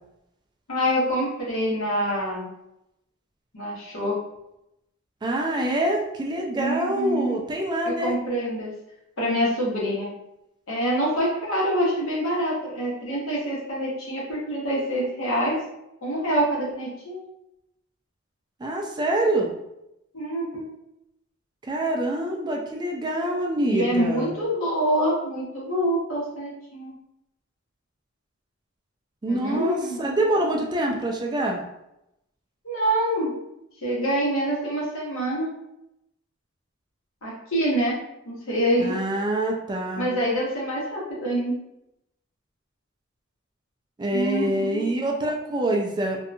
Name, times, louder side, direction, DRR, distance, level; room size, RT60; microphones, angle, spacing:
voice 1, 0.7-2.5 3.5-4.2 6.6-7.4 7.8-8.7 9.2-10.1 10.7-15.6 16.0-17.2 20.1-20.7 23.7-26.9 29.3-30.1 32.6-33.3 33.8-35.5 37.2-38.0 38.3-39.0 40.0-41.5 44.1-44.9, right 1 dB, 80° left, -5 dB, 1.0 m, -26 dB
voice 2, 5.2-8.1 18.6-19.5 21.6-24.3 29.2-31.6 38.8-40.1 44.0-46.2, right 1 dB, 20° right, 0 dB, 0.3 m, -25 dB
2.7 x 2.2 x 2.5 m, 0.85 s
head